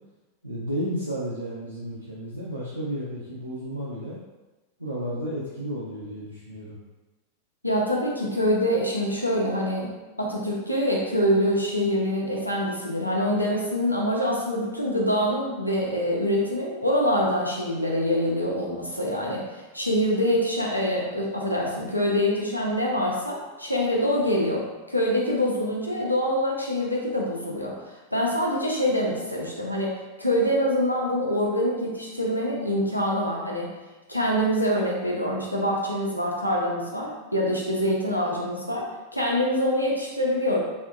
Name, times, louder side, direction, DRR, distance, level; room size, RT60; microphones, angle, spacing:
voice 1, 0.4-4.2 4.8-6.8, equal, 90° right, -8 dB, 0.5 m, -32 dB
voice 2, 7.6-9.9 10.2-27.8 28.1-33.7 34.1-38.9 39.1-40.6, equal, 90° left, -3 dB, 0.6 m, -25 dB
3.4 x 2.6 x 2.3 m, 1.1 s
figure-of-eight pair, 90°, 0 cm